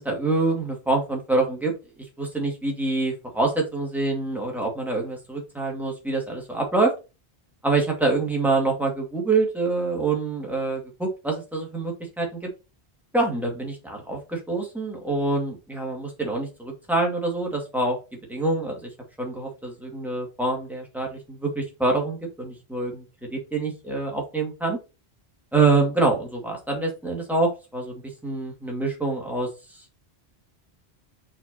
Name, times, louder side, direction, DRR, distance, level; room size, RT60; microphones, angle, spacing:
voice 1, 0.0-1.7 2.2-6.9 7.6-12.5 13.1-18.0 18.3-18.9 19.2-23.1 23.3-24.8 25.5-27.9 28.2-29.5, right 3 dB, ahead, -1 dB, 2.1 m, -25 dB
6.0 x 4.5 x 4.2 m, 0.29 s
omnidirectional pair, 1.1 m